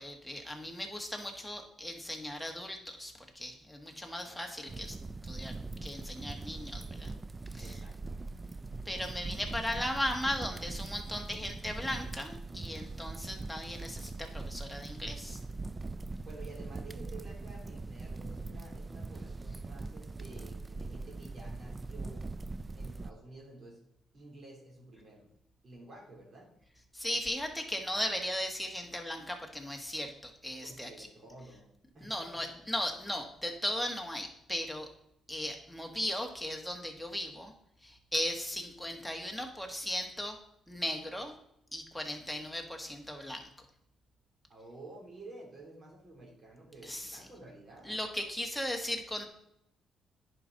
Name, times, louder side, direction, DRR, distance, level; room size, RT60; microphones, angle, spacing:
voice 1, 0.0-4.9 5.3-5.5 5.8-7.1 7.5-7.8 8.8-15.4 26.9-31.1 32.0-34.9 35.3-37.5 37.8-40.4 40.7-41.3 41.7-43.5 46.8-47.2 47.8-49.3, left 1 dB, ahead, 2 dB, 1.6 m, -37 dB
voice 2, 4.2-5.0 6.8-7.2 7.6-8.5 9.3-9.4 16.2-22.3 22.7-23.8 24.1-25.3 25.6-26.5 30.6-32.5 44.5-48.0, right 2 dB, 45° right, -2 dB, 3.3 m, -51 dB
sound 1, 4.7-23.1, right 3 dB, 25° right, 0.3 m, -41 dB
10.0 x 5.3 x 4.0 m, 0.76 s
cardioid pair, 90°, 0 cm